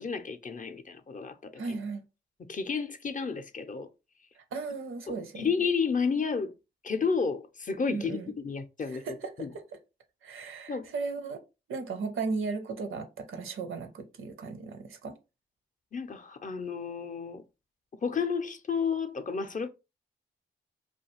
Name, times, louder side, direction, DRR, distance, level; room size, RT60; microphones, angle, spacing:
voice 1, 0.0-1.8 2.4-3.9 5.1-6.5 6.8-9.0 9.4-9.5 10.7-10.9 15.9-17.4 18.0-19.7, left 5 dB, 40° left, 0.5 m, -31 dB
voice 2, 1.6-2.0 4.4-5.5 7.9-8.3 8.9-9.6 10.2-11.4 11.7-15.2, right 4 dB, 75° right, 0.6 m, -36 dB
2.4 x 2.2 x 3.0 m
supercardioid pair, 40°, 21 cm